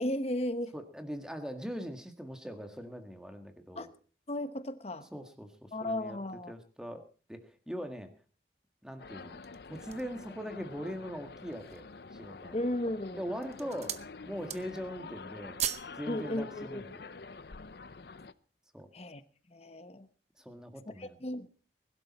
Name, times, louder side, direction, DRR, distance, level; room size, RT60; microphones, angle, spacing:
voice 1, 0.0-0.7 3.7-3.9 4.3-5.1 5.7-6.5 12.5-13.3 16.1-16.8 18.9-19.2 19.5-20.1 21.0-21.5, left 1 dB, 35° left, 11 dB, 1.0 m, -35 dB
voice 2, 0.7-3.9 5.1-6.2 6.5-7.0 7.3-8.1 8.8-9.4 9.7-11.8 12.1-12.6 13.2-13.9 14.3-15.6 16.0-17.0 18.7-18.9 20.4-21.2, equal, 5° right, 6 dB, 1.7 m, -41 dB
sound 1, 9.0-18.3, left 4 dB, 60° left, 0.6 m, -47 dB
sound 2, 9.2-10.2 10.8-10.9 11.4-11.9 12.6-13.0 13.3-14.1 14.4-14.9 15.2-16.0 16.3-16.4, right 10 dB, 35° right, 0.8 m, -38 dB
21.0 x 12.0 x 4.2 m, 0.38 s
head